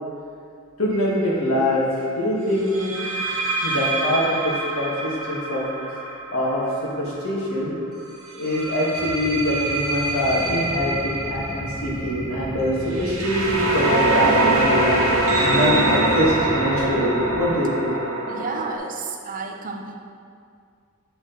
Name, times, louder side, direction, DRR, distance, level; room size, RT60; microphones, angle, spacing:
voice 1, 0.8-2.9 3.6-5.6 5.9-6.0 6.3-6.6 7.0-7.8 8.4-10.9 11.2-14.9 15.4-17.9, left 1 dB, 70° left, -5 dB, 1.6 m, -24 dB
sound 1, 0.9-1.2 2.7-7.5 8.3-18.8, right 2 dB, 75° right, 1.1 m, -24 dB
sound 2, 8.9-16.5, left 1 dB, 10° left, 1.5 m, -37 dB
sound 3, 10.2-17.5, equal, 25° left, 0.9 m, -38 dB
voice 2, 18.3-19.9, right 3 dB, 40° right, 2 dB, 0.6 m, -31 dB
7.7 x 4.3 x 3.9 m, 2.2 s
head